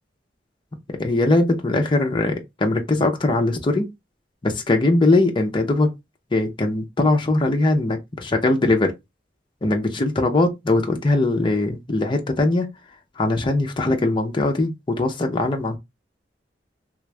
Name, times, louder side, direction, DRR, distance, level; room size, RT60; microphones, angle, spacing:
voice 1, 1.0-3.9 4.4-5.9 6.3-8.9 9.6-12.7 13.2-15.8, left 2 dB, 25° left, 0.6 m, -21 dB
3.3 x 2.4 x 3.1 m
head